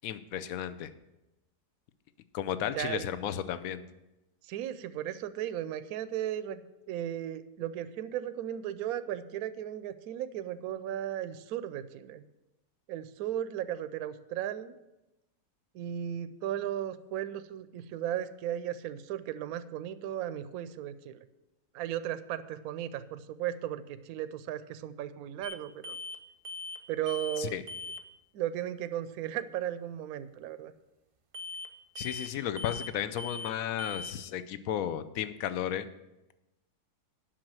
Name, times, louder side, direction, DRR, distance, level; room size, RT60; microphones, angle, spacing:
voice 1, 0.0-0.9 2.3-3.8 27.4-27.6 32.0-35.9, left 10 dB, 65° left, 13 dB, 1.0 m, -34 dB
voice 2, 2.7-3.1 4.4-6.6 6.9-12.2 12.9-14.8 15.7-21.2 21.7-26.0 26.9-27.6 28.3-30.7, right 11 dB, 75° right, 12 dB, 1.0 m, -36 dB
sound 1, 25.4-25.6 25.8-26.2 26.4-26.8 27.1-27.4 27.7-28.0 31.3-31.7 32.0-32.3 32.6-32.9 33.2-33.5 33.8-34.1, left 3 dB, 45° right, 0.7 m, -40 dB
8.7 x 6.2 x 7.6 m, 0.96 s
omnidirectional pair, 1.7 m